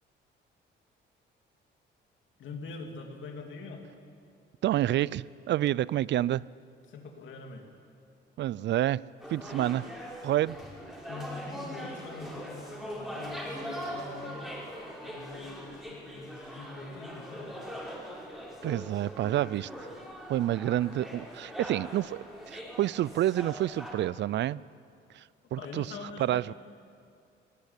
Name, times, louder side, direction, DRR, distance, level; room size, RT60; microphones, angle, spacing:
voice 1, 2.4-3.8 6.9-7.7 11.0-14.4 15.0-17.7 25.6-26.5, left 4 dB, 75° left, 3 dB, 3.0 m, -44 dB
voice 2, 4.6-6.4 8.4-9.0 9.3-9.9 10.2-10.6 18.6-19.7 20.3-24.6 25.1-25.2 25.5-25.9 26.2-26.5, right 13 dB, 65° right, 22 dB, 0.4 m, -28 dB
sound 1, 9.2-23.9, equal, ahead, 5.6 m, -41 dB
20.5 x 15.5 x 9.7 m, 2.4 s
cardioid pair, 90°, 20 cm